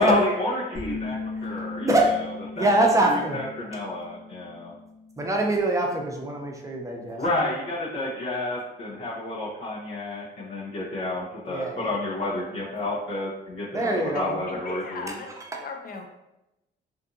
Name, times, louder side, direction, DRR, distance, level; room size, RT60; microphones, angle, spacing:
voice 1, 0.0-1.9 2.6-2.7 3.0-4.7 7.2-15.1, left 2 dB, 90° left, -8 dB, 0.8 m, -29 dB
sound 1, 0.7-6.1, left 4 dB, 15° left, 0.9 m, -38 dB
voice 2, 0.8-1.3 12.1-12.6 14.1-15.3 15.6-16.0, left 3 dB, 45° left, 4 dB, 0.5 m, -39 dB
voice 3, 1.8-2.2 2.6-3.4 5.2-7.2 11.5-11.9 13.7-14.4 15.5-15.6, right 1 dB, 15° right, 0 dB, 0.6 m, -24 dB
2.6 x 2.5 x 2.6 m, 0.91 s
cardioid pair, 90°, 20 cm